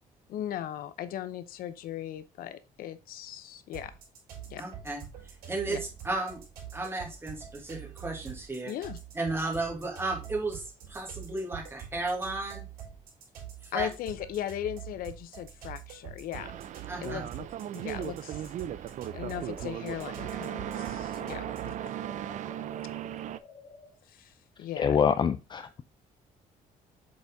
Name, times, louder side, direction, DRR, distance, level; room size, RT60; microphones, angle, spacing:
voice 1, 0.3-3.9 4.5-4.6 5.7-5.8 8.6-9.0 13.7-16.5 17.0-17.5 17.7-18.4 19.1-21.9 24.1-25.0, left 11 dB, 75° left, 0.7 m, -38 dB
sound 1, 3.7-21.8, right 9 dB, 80° right, 3.9 m, -45 dB
voice 2, 4.6-5.0 5.5-6.4 6.7-8.7 9.2-10.6 10.9-12.6 13.7-13.9 16.9-17.3, right 2 dB, 15° right, 1.9 m, -33 dB
sound 2, 16.3-23.4, right 11 dB, 55° right, 0.5 m, -37 dB
sound 3, 19.1-23.9, left 6 dB, 60° left, 1.7 m, -51 dB
voice 3, 24.8-25.8, left 7 dB, 30° left, 0.4 m, -25 dB
7.7 x 4.2 x 3.5 m
cardioid pair, 125°, 15 cm